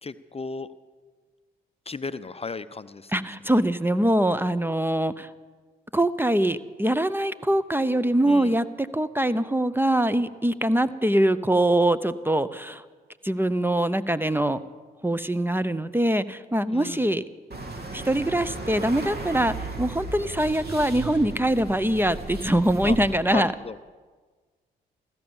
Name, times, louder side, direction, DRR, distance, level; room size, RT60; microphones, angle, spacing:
voice 1, 0.0-0.7 1.9-3.1 8.2-8.6 16.7-17.1 22.8-23.0 23.3-23.8, left 4 dB, 30° left, 13 dB, 0.6 m, -34 dB
voice 2, 3.1-5.3 5.9-12.8 13.2-14.6 15.0-17.2 17.9-23.5, right 1 dB, 10° right, 14 dB, 0.7 m, -23 dB
sound 1, 17.5-23.2, right 2 dB, 50° right, 2.5 m, -35 dB
16.0 x 12.5 x 7.1 m, 1.4 s
supercardioid pair, 50°, 21 cm